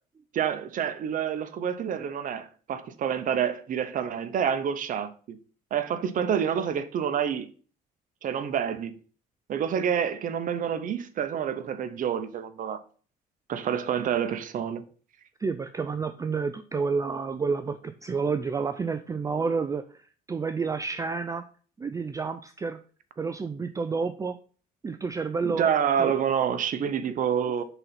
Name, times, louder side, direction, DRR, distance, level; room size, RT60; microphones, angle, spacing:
voice 1, 0.3-5.4 5.7-7.5 8.2-9.0 9.5-12.8 13.5-14.9 25.4-27.6, right 8 dB, 50° right, 0.8 m, -28 dB
voice 2, 15.4-21.5 21.8-22.8 23.2-24.4 24.8-25.7 25.9-26.1 27.1-27.6, right 5 dB, 20° right, 0.4 m, -30 dB
5.9 x 4.0 x 5.7 m
cardioid pair, 110°, 17 cm